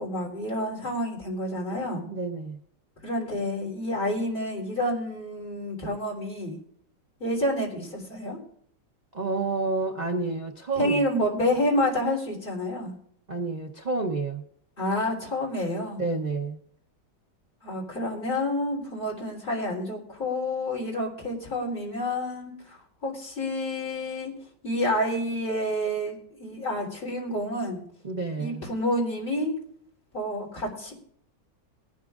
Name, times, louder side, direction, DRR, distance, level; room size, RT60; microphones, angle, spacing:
voice 1, 0.0-2.0 3.0-6.6 7.2-8.4 10.8-12.9 14.8-16.0 17.6-24.3 24.6-27.8 28.4-29.5 30.1-30.9, left 1 dB, 30° left, -2 dB, 3.7 m, -29 dB
voice 2, 2.1-2.6 9.1-11.0 13.3-14.4 16.0-16.6 28.0-28.7, right 3 dB, 40° right, 2 dB, 0.6 m, -29 dB
21.5 x 12.0 x 2.5 m, 0.68 s
omnidirectional pair, 1.9 m